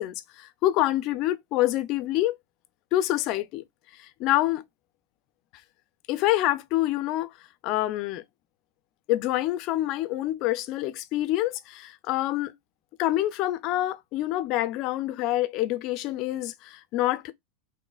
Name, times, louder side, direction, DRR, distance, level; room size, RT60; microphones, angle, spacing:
voice 1, 0.0-2.4 2.9-3.6 4.0-4.6 6.1-7.3 7.6-8.2 9.1-12.5 13.0-17.3, left 15 dB, 45° left, 0.4 m, -26 dB
5.1 x 2.1 x 2.3 m
figure-of-eight pair, 90°, 0 cm